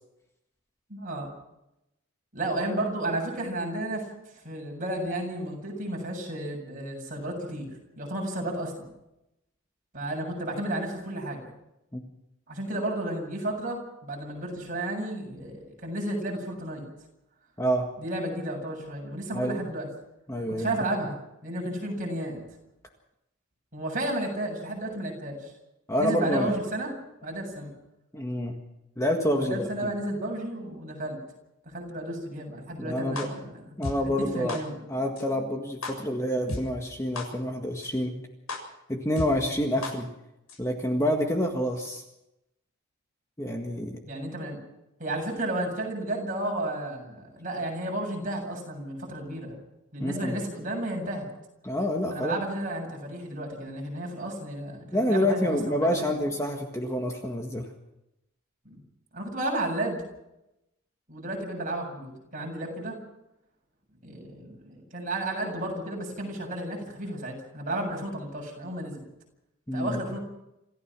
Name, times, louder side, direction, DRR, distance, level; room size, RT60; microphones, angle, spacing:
voice 1, 0.9-1.3 2.3-4.1 4.4-7.7 8.0-8.9 9.9-11.5 12.5-16.9 18.0-19.9 20.5-21.2 21.4-22.4 23.7-25.5 26.0-26.9 27.2-27.7 29.4-31.2 31.7-33.8 34.0-34.9 44.0-44.6 45.0-49.6 49.9-51.3 52.1-56.1 58.6-58.8 59.1-60.0 61.1-63.0 64.0-69.0 69.7-70.2, right 1 dB, 40° right, 0 dB, 7.6 m, -32 dB
voice 2, 20.3-20.8 25.9-26.5 28.1-28.6 29.0-29.9 32.8-33.3 33.8-34.6 34.9-38.1 38.9-40.1 40.6-42.0 43.4-44.0 50.0-50.4 51.6-52.4 54.9-57.7 69.7-70.0, equal, 15° left, 2 dB, 1.8 m, -27 dB
sound 1, 33.1-33.2 33.8-33.9 34.5-34.6 35.2-35.3 35.8-35.9 36.5-36.6 37.1-37.2 37.8-37.9 38.5-38.6 39.2-39.3 39.8-39.9 40.5-40.6, left 2 dB, 90° left, 7.3 m, -32 dB
27.5 x 15.5 x 6.2 m, 0.88 s
head